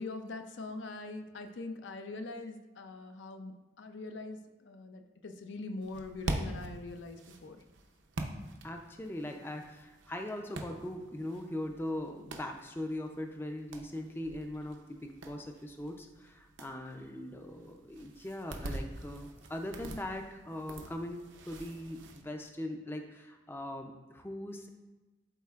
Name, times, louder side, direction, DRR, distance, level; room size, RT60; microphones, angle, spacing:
voice 1, 0.0-7.6, left 3 dB, 80° left, 6 dB, 0.6 m, -43 dB
sound 1, 5.8-22.2, right 2 dB, 85° right, 0.7 m, -44 dB
voice 2, 8.6-24.7, left 1 dB, 10° left, 4 dB, 0.4 m, -40 dB
12.0 x 4.2 x 2.4 m, 1.2 s
head